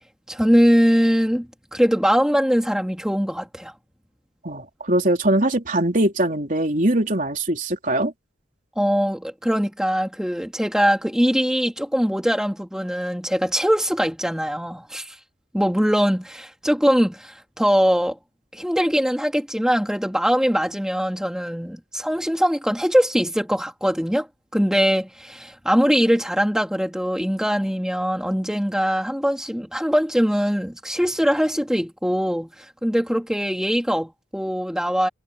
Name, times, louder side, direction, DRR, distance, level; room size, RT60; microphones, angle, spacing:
voice 1, 0.3-3.7 8.8-15.2 15.5-18.2 18.5-24.3 24.5-35.1, equal, 5° right, 3.5 m, -22 dB
voice 2, 4.4-8.1, right 1 dB, 40° right, 3.9 m, -21 dB
head